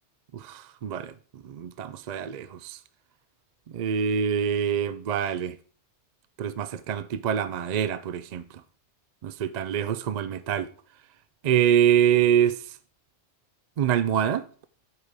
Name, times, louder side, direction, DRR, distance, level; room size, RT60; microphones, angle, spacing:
voice 1, 0.5-1.1 1.5-2.8 3.7-5.5 6.4-8.4 9.2-10.7 11.4-12.6 13.8-14.4, right 9 dB, 55° right, 0.5 m, -25 dB
11.0 x 5.1 x 4.7 m
omnidirectional pair, 1.1 m